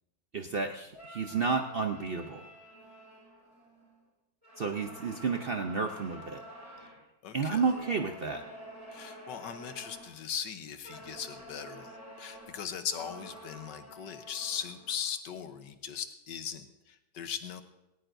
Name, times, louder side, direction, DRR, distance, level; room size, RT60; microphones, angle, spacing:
voice 1, 0.3-2.5 4.6-6.4 7.3-8.4, right 5 dB, 55° right, 4 dB, 0.6 m, -31 dB
sound 1, 0.9-4.0 4.4-7.0 7.5-10.2 10.8-15.1, right 1 dB, 20° right, 6.1 m, -49 dB
voice 2, 7.2-7.6 8.9-11.9 12.2-17.6, left 8 dB, 85° left, 9 dB, 1.6 m, -39 dB
18.5 x 18.0 x 2.6 m, 0.94 s
omnidirectional pair, 1.9 m